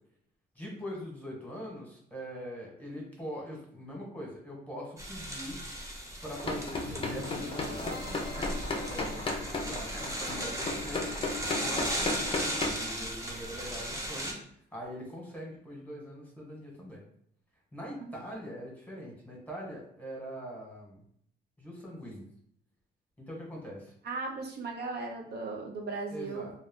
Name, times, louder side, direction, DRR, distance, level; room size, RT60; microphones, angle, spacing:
voice 1, 0.6-5.6 6.2-9.2 9.6-11.1 11.6-14.4 14.7-17.0 17.7-21.0 21.6-22.3 23.2-23.9 26.1-26.5, equal, 5° left, -2 dB, 1.1 m, -42 dB
sound 1, 5.0-14.3, right 1 dB, 15° right, 0.7 m, -37 dB
sound 2, 6.3-12.7, left 3 dB, 25° left, 0.5 m, -35 dB
sound 3, 6.7-12.8, left 1 dB, 80° right, 1.0 m, -45 dB
voice 2, 24.0-26.5, right 3 dB, 55° right, 1 dB, 0.5 m, -37 dB
2.3 x 2.1 x 3.6 m, 0.66 s
cardioid pair, 90°, 20 cm